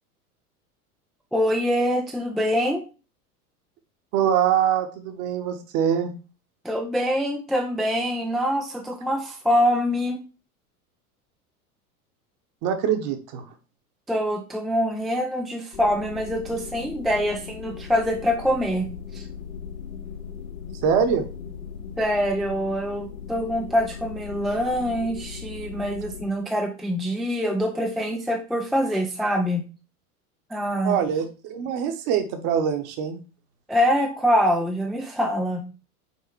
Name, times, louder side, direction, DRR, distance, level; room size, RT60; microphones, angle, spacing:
voice 1, 1.3-2.8 6.6-10.3 14.1-19.3 22.0-29.6 30.5-31.0 33.7-35.6, equal, ahead, 2 dB, 0.5 m, -24 dB
voice 2, 4.1-6.1 12.6-13.4 20.8-21.3 30.8-33.2, right 8 dB, 40° right, 7 dB, 1.2 m, -23 dB
sound 1, 15.7-26.3, left 7 dB, 50° left, 1.8 m, -38 dB
5.7 x 4.5 x 4.5 m, 0.34 s
figure-of-eight pair, 85°, 45 cm